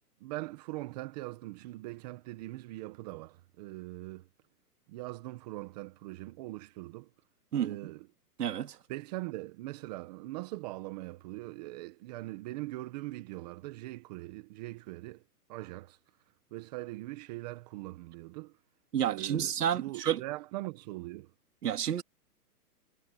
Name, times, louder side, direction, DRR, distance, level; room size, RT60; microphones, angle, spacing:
voice 1, 0.2-4.3 4.9-7.1 7.6-8.1 8.9-15.2 15.5-16.0 16.5-18.6 19.0-21.3, right 19 dB, 25° right, 1.2 m, -41 dB
voice 2, 8.4-8.8 18.9-20.2 21.6-22.0, right 9 dB, 75° right, 2.5 m, -30 dB
hypercardioid pair, 160°, 47 cm